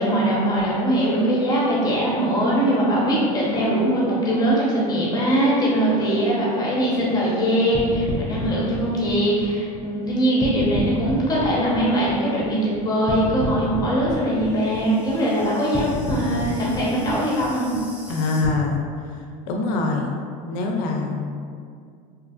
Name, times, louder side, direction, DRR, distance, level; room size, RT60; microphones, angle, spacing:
voice 1, 0.0-17.7, right 1 dB, 20° left, -6 dB, 0.8 m, -21 dB
sound 1, 7.7-10.1 10.4-12.8 13.1-18.5, left 1 dB, 5° right, 0.4 m, -31 dB
voice 2, 18.1-18.8 19.1-20.1 20.4-21.2, left 3 dB, 75° left, 1 dB, 0.5 m, -24 dB
2.8 x 2.4 x 2.3 m, 2.2 s
supercardioid pair, 115°, 20 cm